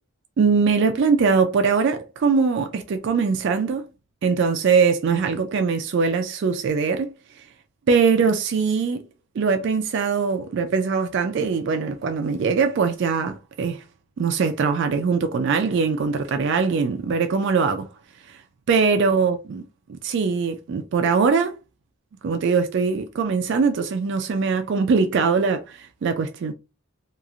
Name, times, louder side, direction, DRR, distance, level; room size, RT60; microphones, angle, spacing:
voice 1, 0.4-3.9 4.2-7.1 7.9-9.1 9.4-13.8 14.2-17.9 18.3-18.4 18.7-19.6 19.9-21.5 22.2-26.5, right 5 dB, 55° right, 0.3 m, -22 dB
2.9 x 2.4 x 2.4 m
head